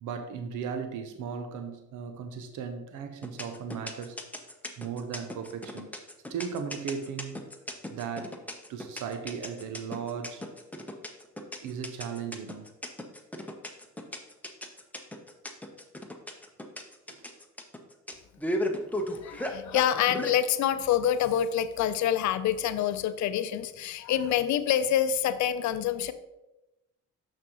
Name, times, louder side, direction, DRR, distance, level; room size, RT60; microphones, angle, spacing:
voice 1, 0.0-4.2 4.8-5.9 6.3-7.4 7.9-8.4 8.7-10.5 11.6-12.7 17.1-17.3, right 6 dB, 75° right, 7 dB, 0.7 m, -36 dB
sound 1, 3.2-20.3, left 1 dB, 5° left, 0.8 m, -35 dB
voice 2, 19.2-26.1, left 10 dB, 70° left, 12 dB, 0.5 m, -26 dB
6.6 x 6.0 x 3.0 m, 0.98 s
cardioid pair, 90°, 30 cm